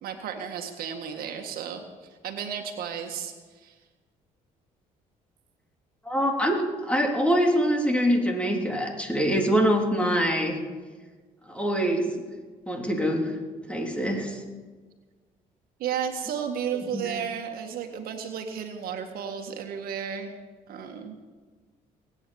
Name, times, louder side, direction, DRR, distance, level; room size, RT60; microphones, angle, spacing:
voice 1, 0.0-3.7 15.8-20.3 20.7-21.2, right 8 dB, 75° right, 5 dB, 1.8 m, -33 dB
voice 2, 6.0-10.6 11.5-12.1 12.7-13.4 13.7-14.4 16.9-17.1, equal, 10° left, 1 dB, 3.4 m, -24 dB
20.0 x 9.3 x 7.1 m, 1.4 s
supercardioid pair, 80°, 16 cm